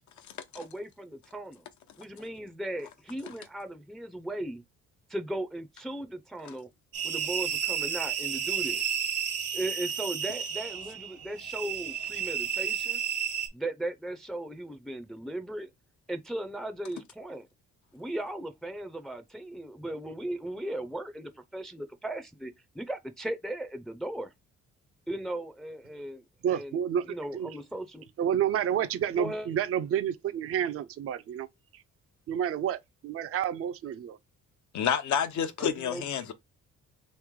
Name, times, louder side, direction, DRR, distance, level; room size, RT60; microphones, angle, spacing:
voice 1, 0.5-1.6 2.0-4.6 5.1-6.7 7.0-8.8 9.5-13.0 13.5-15.7 16.1-17.5 17.9-24.3 25.1-26.8 27.1-28.1 29.2-29.5 35.6-36.0, right 1 dB, ahead, 0.5 m, -37 dB
sound 1, 6.9-13.5, right 8 dB, 85° right, 1.3 m, -32 dB
voice 2, 26.4-27.5 28.2-31.5 31.7-31.8 32.3-34.2, right 9 dB, 50° right, 0.5 m, -30 dB
voice 3, 34.7-36.3, left 8 dB, 70° left, 0.8 m, -29 dB
3.2 x 3.0 x 3.6 m
cardioid pair, 90°, 30 cm